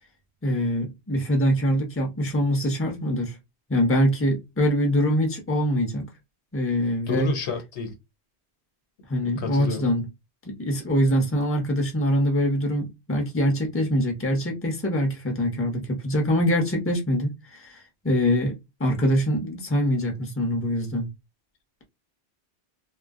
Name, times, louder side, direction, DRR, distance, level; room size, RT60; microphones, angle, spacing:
voice 1, 0.4-3.4 3.7-6.0 6.5-7.3 9.1-10.0 10.4-21.1, equal, 15° left, 0.7 m, -24 dB
voice 2, 7.1-7.9 9.2-9.9, left 4 dB, 80° left, 1.1 m, -30 dB
2.3 x 2.0 x 3.5 m
omnidirectional pair, 1.1 m